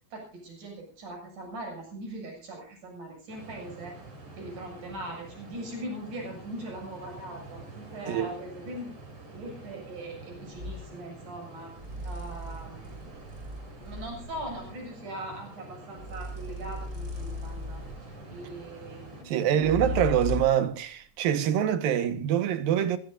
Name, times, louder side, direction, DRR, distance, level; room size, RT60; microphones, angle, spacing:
voice 1, 0.1-3.9 4.3-7.6 7.9-8.9 9.3-11.8 12.0-13.1 13.8-20.0, right 1 dB, 60° right, 8.6 m, -41 dB
sound 1, 3.3-19.2, right 2 dB, 45° right, 6.8 m, -47 dB
sound 2, 10.5-10.9 11.8-14.8 16.0-18.2 19.6-20.7, left 2 dB, 25° right, 2.7 m, -37 dB
voice 2, 19.3-23.0, right 10 dB, 80° right, 3.2 m, -25 dB
25.5 x 16.5 x 2.6 m
omnidirectional pair, 4.0 m